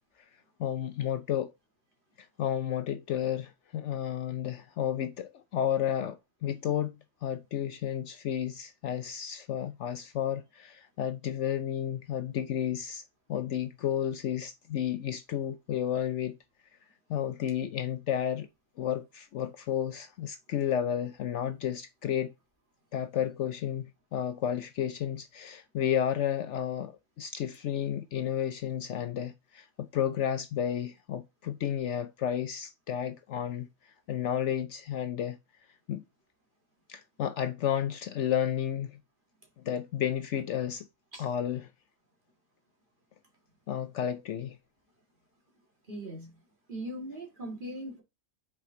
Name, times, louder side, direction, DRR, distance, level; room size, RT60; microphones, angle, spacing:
voice 1, 0.6-1.5 2.2-13.0 13.3-16.4 17.1-18.5 18.8-22.3 22.9-35.4 35.9-36.0 36.9-39.0 39.6-40.8 41.2-41.7 43.7-44.6, left 10 dB, 65° left, 0.8 m, -32 dB
voice 2, 45.9-46.4 46.7-48.0, right 1 dB, 35° right, 2.2 m, -39 dB
5.8 x 4.8 x 3.8 m
omnidirectional pair, 1.4 m